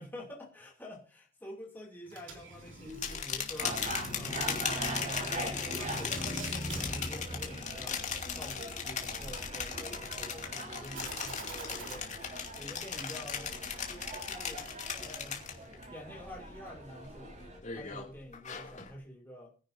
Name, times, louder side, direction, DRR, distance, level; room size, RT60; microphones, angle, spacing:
voice 1, 0.0-3.9 4.1-8.0 8.3-12.1 12.6-13.6 13.9-14.7 15.0-15.5 15.9-17.3 17.7-19.5, left 1 dB, 10° left, -2 dB, 2.7 m, -48 dB
sound 1, 2.1-8.2 10.9-12.0, right 2 dB, 80° right, 3.6 m, -47 dB
sound 2, 2.9-15.8 16.2-16.6 17.0-18.9, left 7 dB, 40° left, 2.6 m, -38 dB
sound 3, 3.6-17.6, right 1 dB, 40° right, 4.6 m, -41 dB
21.5 x 10.5 x 2.7 m, 0.38 s
head